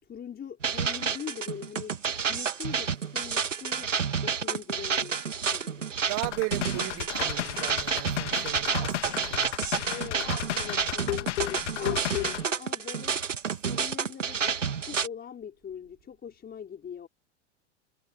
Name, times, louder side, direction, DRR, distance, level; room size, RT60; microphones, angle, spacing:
voice 1, 0.0-3.9 4.2-5.9 9.9-13.2 13.6-17.1, left 8 dB, 25° left, 5.5 m, -42 dB
sound 1, 0.6-15.1, right 6 dB, 90° right, 2.2 m, -30 dB
voice 2, 6.1-9.5, right 25 dB, 45° right, 1.5 m, -36 dB
sound 2, 6.2-12.4, left 13 dB, 70° left, 2.7 m, -33 dB
hypercardioid pair, 90°, 36 cm